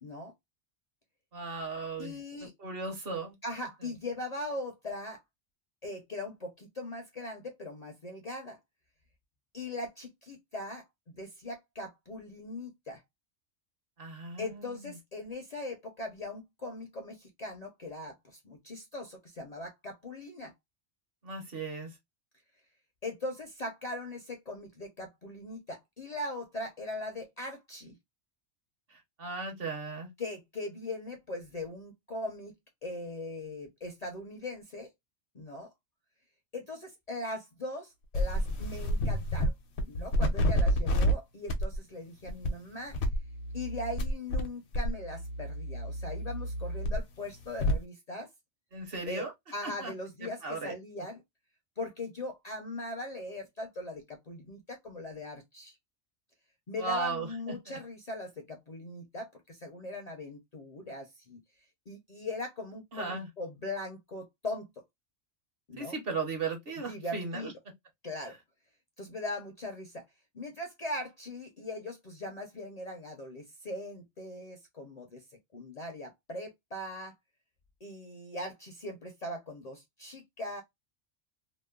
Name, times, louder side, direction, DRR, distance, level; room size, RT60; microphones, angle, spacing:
voice 1, 0.0-0.3 2.0-2.5 3.4-5.2 5.8-8.6 9.5-13.0 14.4-20.5 23.0-28.0 30.2-32.5 32.8-34.9 35.3-35.7 36.5-39.5 39.9-43.0 43.5-48.3 49.1-49.3 49.5-51.2 51.8-55.8 56.7-61.4 61.9-64.7 65.7-66.0 66.9-67.5 68.0-68.4 69.0-70.0 70.3-75.2 75.5-77.1 77.8-80.6, left 1 dB, 45° left, 0.5 m, -40 dB
voice 2, 1.3-3.4 14.0-15.0 21.2-21.9 28.9-30.1 48.7-49.3 49.6-49.9 50.2-50.7 56.8-57.8 62.9-63.3 65.8-67.5, right 3 dB, 55° right, 1.0 m, -37 dB
sound 1, 38.1-39.5 39.8-41.1 41.5-41.8 42.3-42.5 42.9-44.5 44.7-47.8, equal, 70° left, 0.9 m, -29 dB
2.9 x 2.0 x 2.2 m
omnidirectional pair, 1.2 m